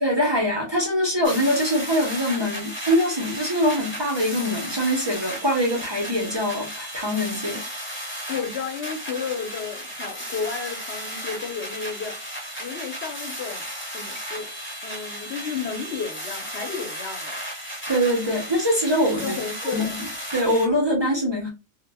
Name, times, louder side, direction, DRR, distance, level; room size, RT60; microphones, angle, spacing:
voice 1, 0.0-7.6 17.9-19.4 19.6-21.5, equal, 45° right, 0.3 m, -23 dB
sound 1, 1.2-20.6, equal, 15° left, 0.6 m, -34 dB
voice 2, 8.3-12.2 12.6-13.7 13.9-14.5 14.8-17.4 19.2-20.0, left 6 dB, 65° left, 0.7 m, -32 dB
2.0 x 2.0 x 3.3 m
omnidirectional pair, 1.3 m